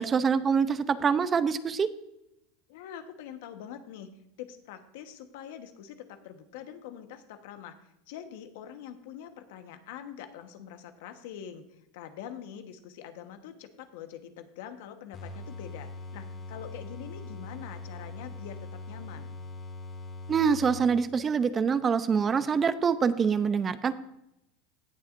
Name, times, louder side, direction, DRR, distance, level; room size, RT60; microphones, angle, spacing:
voice 1, 0.0-1.9 20.3-23.9, right 6 dB, 25° right, 13 dB, 0.6 m, -25 dB
voice 2, 2.7-4.1 4.4-7.8 8.1-11.6 11.9-19.4, left 9 dB, 70° left, 8 dB, 1.2 m, -44 dB
sound 1, 15.1-21.2, left 2 dB, 35° left, 1.9 m, -42 dB
17.0 x 7.1 x 2.6 m, 0.84 s
supercardioid pair, 105°, 0 cm